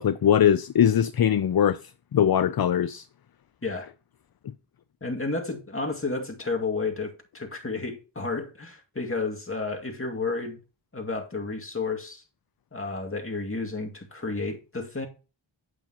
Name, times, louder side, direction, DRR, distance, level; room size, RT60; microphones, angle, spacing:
voice 1, 0.0-3.1, left 9 dB, 50° left, 0.6 m, -21 dB
voice 2, 5.0-10.6 10.9-12.2 12.7-15.1, left 3 dB, 25° left, 2.3 m, -31 dB
8.8 x 8.7 x 2.9 m
cardioid pair, 45°, 48 cm